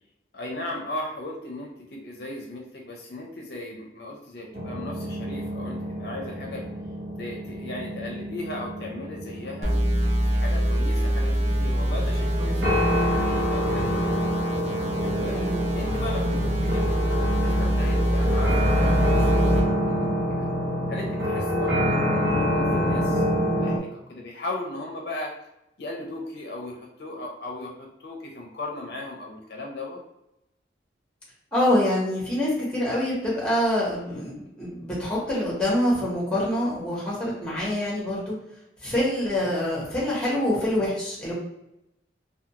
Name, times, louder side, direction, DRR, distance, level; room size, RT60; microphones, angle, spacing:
voice 1, 0.3-6.6 7.2-9.7 10.2-14.3 15.0-15.4 15.7-17.0 17.3-20.5 20.9-25.3 25.8-30.0, left 2 dB, 60° left, -1 dB, 0.5 m, -37 dB
sound 1, 4.5-23.8, equal, 80° right, 0.8 m, -27 dB
sound 2, 9.6-19.6, equal, 35° right, 0.6 m, -25 dB
voice 2, 15.3-15.6 31.5-38.4 38.8-41.3, left 1 dB, 5° left, -6 dB, 0.9 m, -25 dB
2.4 x 2.2 x 2.8 m, 0.86 s
head